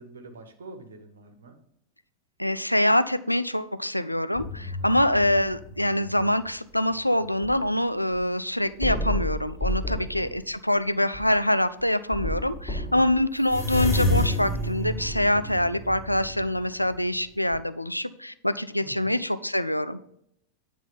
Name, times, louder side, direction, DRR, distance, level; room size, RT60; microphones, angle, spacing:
voice 1, 0.0-1.6 4.8-5.1 9.8-10.5 12.9-13.1 18.8-19.1, right 4 dB, 65° right, 6 dB, 1.4 m, -45 dB
voice 2, 2.4-20.0, left 1 dB, 90° left, 13 dB, 0.4 m, -25 dB
sound 1, 4.3-6.5 7.0-7.7 8.2-8.3 8.8-10.4 11.1-11.3 11.8-11.9 12.1-17.2 17.5-17.6, left 1 dB, 15° left, 3.6 m, -30 dB
9.3 x 4.1 x 5.3 m, 0.73 s
figure-of-eight pair, 90°, 0 cm